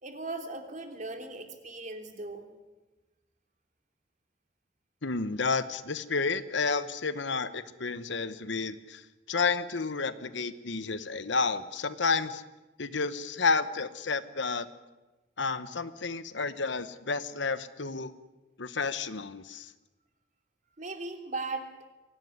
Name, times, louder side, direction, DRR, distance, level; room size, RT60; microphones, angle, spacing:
voice 1, 0.0-2.5 20.8-21.7, right 3 dB, 40° right, 5 dB, 3.0 m, -38 dB
voice 2, 5.0-12.4 12.8-14.7 15.4-18.1 18.6-19.7, left 4 dB, 70° left, 14 dB, 1.1 m, -31 dB
23.5 x 17.0 x 9.7 m, 1.1 s
head